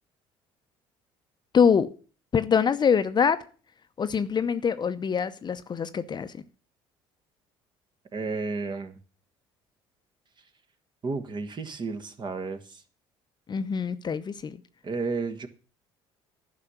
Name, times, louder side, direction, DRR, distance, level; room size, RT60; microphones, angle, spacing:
voice 1, 1.5-1.9 2.3-3.4 4.0-6.3 13.5-14.6, left 6 dB, 35° left, 0.7 m, -24 dB
voice 2, 8.1-8.9 11.0-12.6 14.8-15.5, right 4 dB, 40° right, 1.6 m, -32 dB
11.0 x 5.8 x 8.0 m
supercardioid pair, 70°, 12 cm